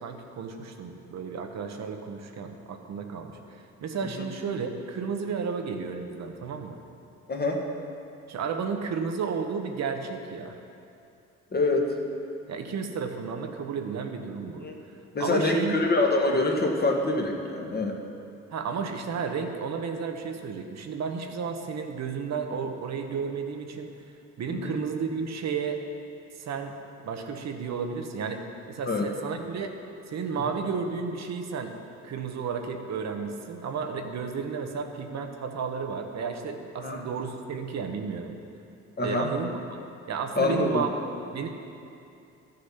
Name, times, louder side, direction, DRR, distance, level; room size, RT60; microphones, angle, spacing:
voice 1, 0.0-6.8 8.3-10.5 12.5-14.7 15.2-15.8 18.5-23.9 24.4-25.8 26.4-26.7 27.0-29.7 30.1-31.7 32.0-38.4 39.0-39.8 40.1-41.0 41.3-41.5, right 5 dB, 60° right, 5 dB, 1.1 m, -32 dB
voice 2, 7.3-7.6 11.5-12.0 14.6-14.8 15.1-18.0 24.5-24.8 28.9-29.1 36.8-37.1 39.0-39.3 40.4-40.8, left 2 dB, 30° left, 1 dB, 1.6 m, -25 dB
13.0 x 6.7 x 5.8 m, 2.6 s
cardioid pair, 90°, 30 cm